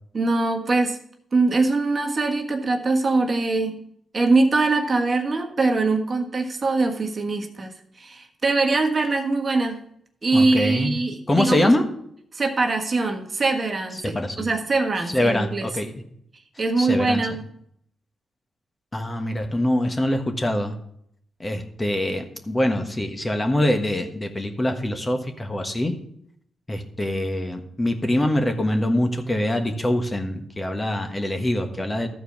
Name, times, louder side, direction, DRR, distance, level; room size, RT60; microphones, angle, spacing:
voice 1, 0.1-1.0 1.3-3.8 4.1-7.7 8.0-9.8 10.2-11.7 12.3-15.7 16.6-17.4, right 3 dB, 40° right, 3 dB, 1.5 m, -22 dB
voice 2, 10.3-10.9 11.3-11.8 14.0-14.5 15.1-15.9 16.8-17.2 18.9-20.7 21.4-25.9 26.7-32.1, left 1 dB, 25° left, 5 dB, 1.4 m, -24 dB
13.0 x 4.6 x 5.9 m, 0.70 s
cardioid pair, 65°, 0 cm